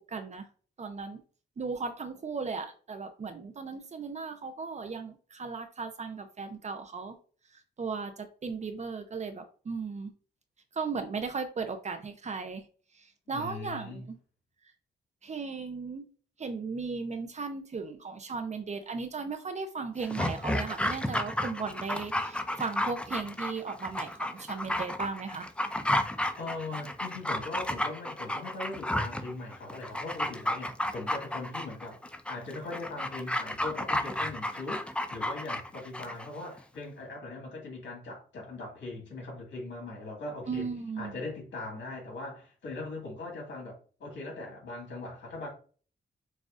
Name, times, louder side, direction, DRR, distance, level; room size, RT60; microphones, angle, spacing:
voice 1, 0.1-0.5 0.8-1.2 1.6-7.2 7.8-10.1 10.7-12.6 13.0-14.1 15.2-16.0 16.4-25.5 40.5-41.2, right 4 dB, 40° right, 0.6 m, -36 dB
voice 2, 13.3-14.1 26.4-32.0 32.3-40.7 41.0-45.5, left 2 dB, 75° left, 2.0 m, -40 dB
Dog, 20.0-36.3 36.6-36.7, left 1 dB, 5° left, 0.3 m, -32 dB
6.1 x 2.4 x 2.5 m
wide cardioid pair, 115°, 19 cm